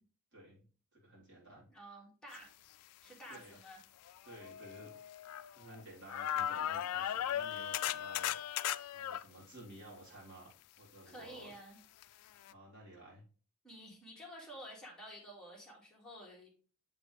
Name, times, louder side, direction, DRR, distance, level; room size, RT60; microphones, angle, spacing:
voice 1, 0.3-1.7 3.3-3.6 4.2-5.0 5.5-8.4 8.9-10.5 10.8-11.5 12.5-13.2, right 1 dB, 55° right, -6 dB, 3.9 m, -54 dB
voice 2, 1.7-2.5 3.0-3.8 11.1-11.8 13.6-16.5, equal, 5° left, -4 dB, 2.3 m, -51 dB
sound 1, 3.3-3.4 4.1-5.8 6.1-9.2 12.0-12.1 12.5-12.6, left 11 dB, 85° left, 0.3 m, -37 dB
7.4 x 4.9 x 3.4 m, 0.40 s
head